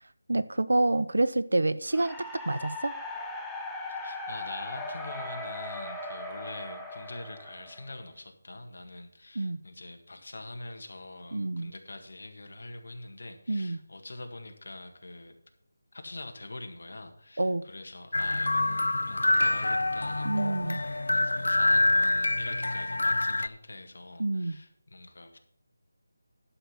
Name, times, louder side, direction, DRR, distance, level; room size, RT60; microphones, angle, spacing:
voice 1, 0.3-2.9 9.4-9.6 11.3-11.7 13.5-13.8 17.4-17.6 20.2-20.8 24.2-24.6, right 2 dB, 85° right, 15 dB, 0.7 m, -27 dB
sound 1, 1.9-8.1, left 2 dB, ahead, 0.6 m, -39 dB
voice 2, 3.9-15.4 15.9-25.4, left 2 dB, 65° left, 5 dB, 1.7 m, -44 dB
sound 2, 18.1-23.5, left 2 dB, 85° left, 0.4 m, -26 dB
11.5 x 5.7 x 6.0 m, 0.69 s
figure-of-eight pair, 175°, 0 cm